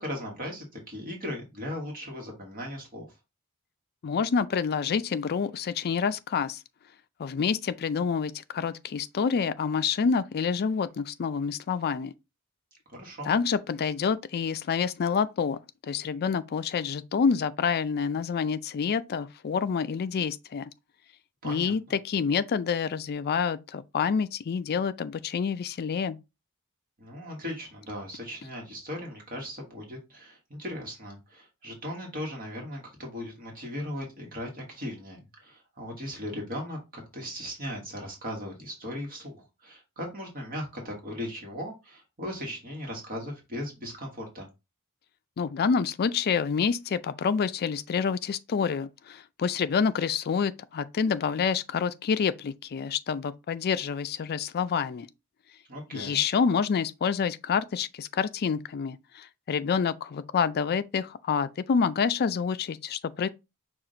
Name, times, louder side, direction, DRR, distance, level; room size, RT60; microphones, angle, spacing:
voice 1, 0.0-3.1 12.9-13.3 21.4-21.7 27.0-44.5 55.7-56.2, equal, 40° right, 1.3 m, -38 dB
voice 2, 4.0-6.6 7.2-12.1 13.3-15.6 15.9-20.7 21.4-26.2 45.4-55.1 55.9-63.3, left 6 dB, 45° left, 0.4 m, -27 dB
5.9 x 2.4 x 3.8 m
head